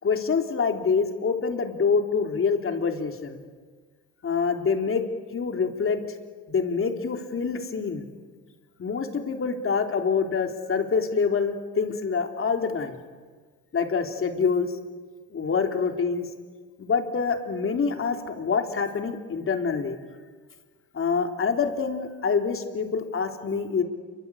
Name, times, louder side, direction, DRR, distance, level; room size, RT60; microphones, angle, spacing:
voice 1, 0.0-3.4 4.2-5.0 5.3-6.0 6.5-8.1 8.8-13.0 13.7-14.7 15.3-16.3 16.8-20.0 20.9-23.8, left 5 dB, 45° left, 4 dB, 3.5 m, -26 dB
28.0 x 24.5 x 8.4 m, 1.5 s
cardioid pair, 90°, 30 cm